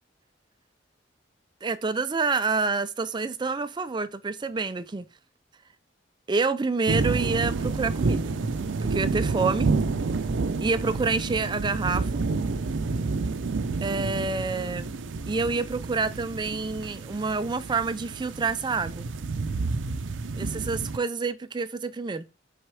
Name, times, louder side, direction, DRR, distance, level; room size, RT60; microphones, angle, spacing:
voice 1, 1.6-5.1 6.3-8.3 8.8-9.7 10.6-12.1 13.8-14.9 15.2-19.1 20.4-22.3, right 4 dB, 25° right, 0.4 m, -28 dB
sound 1, 6.9-21.0, right 3 dB, 90° right, 0.5 m, -29 dB
6.1 x 4.3 x 4.8 m
head